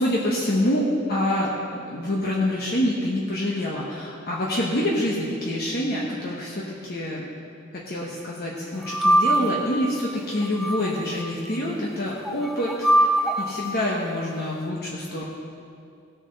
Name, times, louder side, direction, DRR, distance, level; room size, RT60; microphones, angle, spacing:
voice 1, 0.0-1.5 1.9-7.2 7.7-13.1 13.4-15.3, left 1 dB, 50° left, -4 dB, 1.2 m, -26 dB
sound 1, 8.9-9.7 10.4-11.3 12.3-13.7, right 1 dB, ahead, 0.7 m, -22 dB
17.5 x 7.1 x 4.1 m, 2.4 s
head